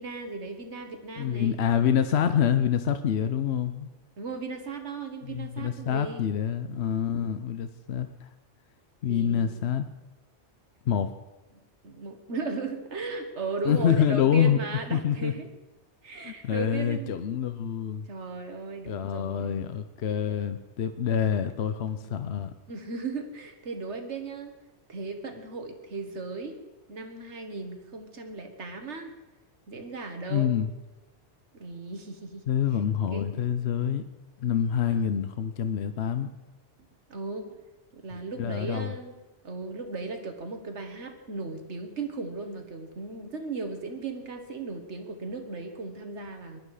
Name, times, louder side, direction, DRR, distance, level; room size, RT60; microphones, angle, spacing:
voice 1, 0.0-1.6 4.2-6.2 9.1-9.6 11.8-15.5 16.0-17.4 18.1-19.6 21.2-21.5 22.0-22.4 22.7-24.5 24.9-26.6 26.9-29.1 29.7-30.5 31.5-32.4 33.1-33.3 34.9-35.2 37.1-37.5 37.9-39.1 39.4-46.6, right 3 dB, 85° right, 6 dB, 1.9 m, -36 dB
voice 2, 1.2-3.9 5.2-8.3 9.0-9.9 10.9-11.1 13.6-14.6 14.9-15.3 16.2-18.1 18.9-22.5 30.3-30.7 32.5-34.0 34.4-36.3 38.4-38.9, left 8 dB, 70° left, 10 dB, 1.0 m, -26 dB
22.0 x 11.5 x 4.9 m, 1.1 s
omnidirectional pair, 1.1 m